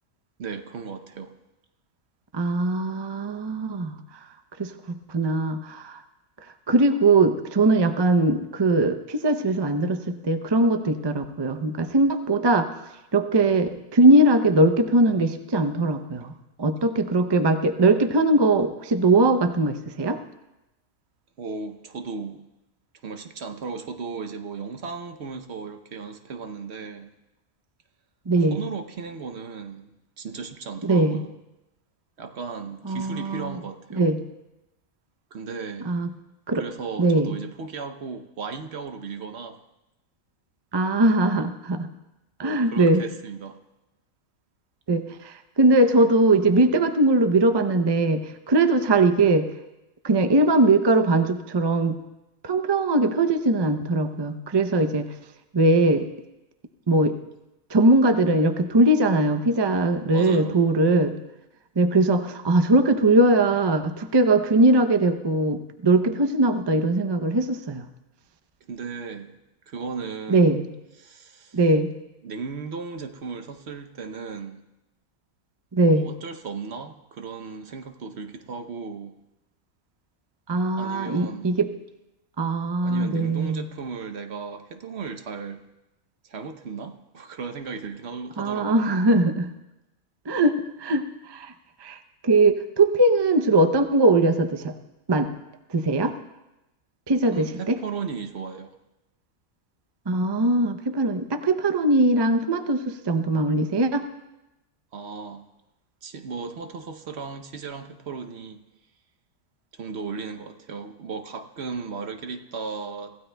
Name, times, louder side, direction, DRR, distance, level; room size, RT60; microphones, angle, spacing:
voice 1, 0.4-1.3 21.4-22.4 23.0-27.1 28.5-31.3 32.2-34.2 35.3-35.9 36.5-39.6 42.4-43.6 60.1-60.6 68.7-69.4 69.7-70.6 71.0-71.6 72.2-74.6 75.9-79.2 80.8-81.6 82.8-85.6 86.2-88.9 97.3-98.8 104.9-105.5 106.0-108.6 109.7-113.2, right 5 dB, 55° right, 8 dB, 1.0 m, -36 dB
voice 2, 2.3-4.0 4.6-6.0 6.7-12.7 13.1-16.3 16.6-20.2 28.3-28.6 30.8-31.2 32.8-33.6 34.0-34.2 35.8-36.1 36.5-36.6 37.0-37.4 40.7-41.9 42.4-43.0 44.9-49.5 50.0-51.9 52.4-55.1 55.5-56.1 56.9-57.2 57.7-61.1 61.8-67.8 70.3-70.7 71.5-71.9 75.7-76.1 80.5-81.7 82.4-83.6 88.4-89.5 90.3-91.5 91.8-92.0 92.2-94.7 95.1-95.3 95.7-96.1 97.1-97.8 100.1-104.1, right 2 dB, 35° right, 7 dB, 0.4 m, -21 dB
25.0 x 15.5 x 2.2 m, 0.95 s
omnidirectional pair, 1.4 m